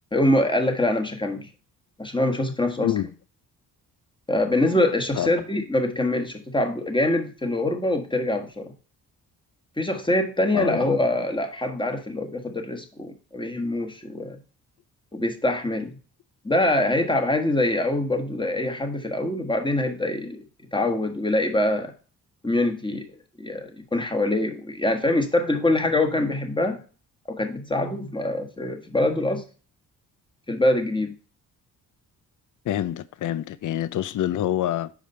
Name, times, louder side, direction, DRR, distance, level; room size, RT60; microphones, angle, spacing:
voice 1, 0.1-1.5 2.0-2.9 4.3-8.7 9.8-14.4 15.1-16.0 16.4-20.4 20.7-21.9 22.4-23.0 23.4-26.8 27.4-29.4 30.5-31.1, left 1 dB, 10° left, 1.5 m, -24 dB
voice 2, 10.5-10.9 32.7-34.9, left 12 dB, 50° left, 0.5 m, -26 dB
5.2 x 5.0 x 5.4 m
cardioid pair, 70°, 38 cm